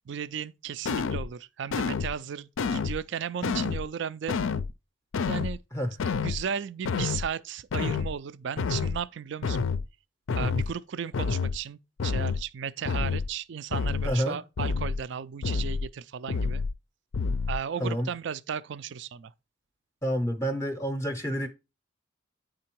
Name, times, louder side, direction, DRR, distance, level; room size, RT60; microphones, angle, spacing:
voice 1, 0.1-4.3 5.3-5.6 6.2-9.7 10.3-16.6 17.5-19.3, right 7 dB, 60° right, 0.4 m, -35 dB
sound 1, 0.9-1.3 1.7-2.1 2.6-3.0 3.4-3.8 4.3-4.7 5.1-5.6 6.0-6.4 6.8-7.3 7.7-8.1 8.6-9.0 9.4-9.8 10.3-10.7 11.1-11.6 12.0-12.4 12.9-13.3 13.7-14.1 14.6-15.0 15.4-15.9 16.3-16.7 17.1-17.6, left 5 dB, 70° left, 0.4 m, -28 dB
voice 2, 14.0-14.4 17.8-18.1 20.0-21.5, equal, 15° left, 0.6 m, -29 dB
9.4 x 3.8 x 4.5 m
head